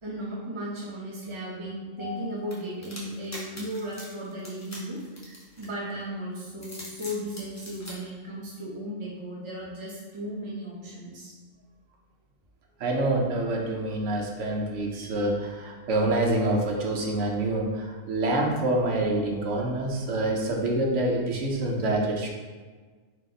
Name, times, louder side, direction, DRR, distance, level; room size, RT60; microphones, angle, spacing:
voice 1, 0.0-5.0 5.6-11.3, equal, 30° right, -6 dB, 0.7 m, -35 dB
sound 1, 2.5-6.0 6.5-7.9, equal, 15° left, 0.8 m, -43 dB
voice 2, 12.8-22.3, right 2 dB, 70° right, 0 dB, 1.1 m, -26 dB
4.6 x 2.9 x 3.8 m, 1.4 s
omnidirectional pair, 1.3 m